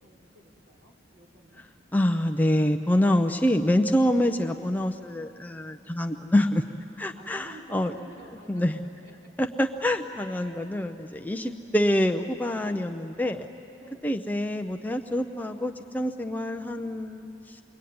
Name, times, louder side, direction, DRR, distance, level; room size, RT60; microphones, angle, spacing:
voice 1, 0.0-1.6 7.2-8.8 9.0-9.1 10.3-10.7 11.4-11.5 13.8-14.1, right 1 dB, 55° right, -2 dB, 4.2 m, -51 dB
voice 2, 1.9-6.6 7.0-7.9 8.5-8.8 9.4-13.5 14.0-17.6, left 1 dB, 10° left, 4 dB, 0.5 m, -26 dB
27.0 x 22.5 x 9.4 m, 2.8 s
head